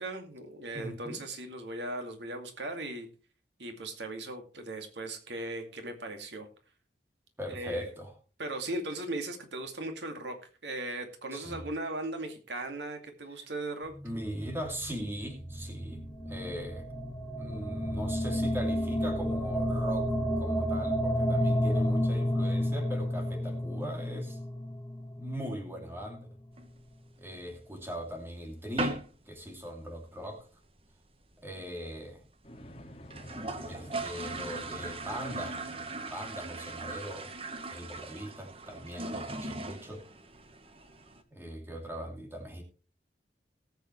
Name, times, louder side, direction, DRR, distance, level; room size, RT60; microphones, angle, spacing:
voice 1, 0.0-3.1 3.6-6.5 7.5-7.8 8.4-13.9, right 2 dB, 85° right, 5 dB, 2.3 m, -38 dB
voice 2, 0.7-1.2 7.4-8.1 11.3-11.6 13.4-13.5 14.0-16.9 17.4-24.4 25.2-26.3 27.2-29.0 29.3-30.5 31.4-32.2 33.7-35.6 36.1-37.3 37.7-40.0 41.3-42.6, equal, 15° right, 3 dB, 2.7 m, -40 dB
sound 1, 13.8-26.1, equal, 10° left, 1.6 m, -31 dB
sound 2, 26.5-27.6 28.0-28.1 28.3-28.5 28.8-29.2 29.5-29.6 29.9-30.0 30.2-30.7 31.0-31.1 31.3-31.4 31.6-31.7 32.3-32.4 32.6-32.7 33.0-41.2, right 2 dB, 35° right, 1.2 m, -39 dB
sound 3, 32.4-36.6, equal, 35° left, 1.9 m, -48 dB
18.5 x 8.3 x 3.2 m, 0.35 s
head